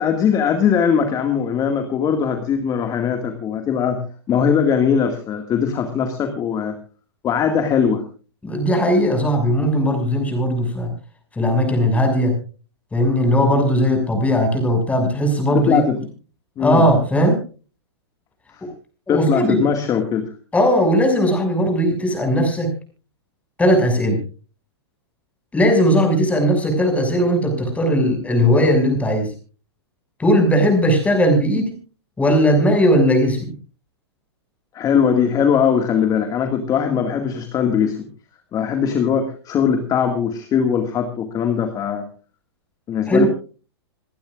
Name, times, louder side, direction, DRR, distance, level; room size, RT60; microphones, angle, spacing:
voice 1, 0.0-4.0 4.3-6.7 7.2-8.0 15.5-16.0 16.6-16.8 18.5-18.6 19.1-20.3 34.7-38.0 38.5-42.0 42.9-43.3, left 7 dB, 25° left, 6 dB, 2.1 m, -20 dB
voice 2, 8.4-10.9 11.3-12.3 12.9-15.8 16.6-17.4 19.1-19.6 20.5-22.7 23.6-24.2 25.5-29.3 30.2-31.8 32.2-33.5 43.1-43.3, equal, 10° left, 4 dB, 6.3 m, -18 dB
28.5 x 12.0 x 2.5 m, 0.36 s
hypercardioid pair, 125°, 14 cm